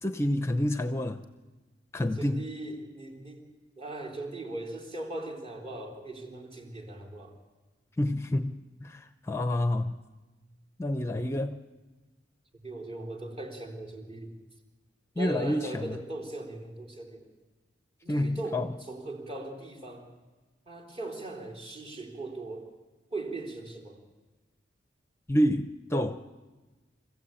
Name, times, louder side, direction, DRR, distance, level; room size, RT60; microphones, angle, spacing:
voice 1, 0.0-1.2 1.9-2.4 8.0-10.0 10.8-11.6 15.2-16.0 18.1-18.7 25.3-26.2, left 1 dB, 15° left, 9 dB, 0.7 m, -28 dB
voice 2, 2.2-7.4 12.6-14.4 15.1-17.3 18.0-20.1 20.7-22.7 23.1-24.0, right 2 dB, 35° right, 0 dB, 3.9 m, -39 dB
26.0 x 15.5 x 9.0 m, 1.2 s
head